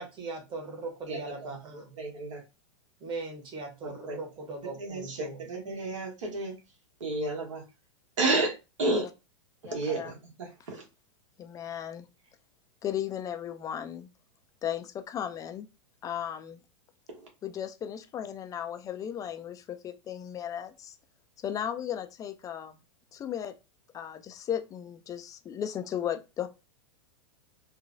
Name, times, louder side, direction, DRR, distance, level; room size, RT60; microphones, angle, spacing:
voice 1, 0.0-2.0 3.0-5.5, right 3 dB, 30° right, 1.2 m, -39 dB
voice 2, 1.1-1.5 2.0-2.4 3.8-4.2 4.8-6.6 7.0-7.6 8.2-8.5 8.8-9.1 9.6-10.8 17.2-17.3, right 2 dB, 75° right, 1.4 m, -31 dB
voice 3, 9.7-10.1 11.4-12.1 12.8-14.1 14.6-15.7 16.0-16.6 17.4-21.0 21.4-22.8 23.1-23.5 23.9-26.5, left 9 dB, 20° left, 0.4 m, -35 dB
3.0 x 2.2 x 2.6 m
hypercardioid pair, 115°, 16 cm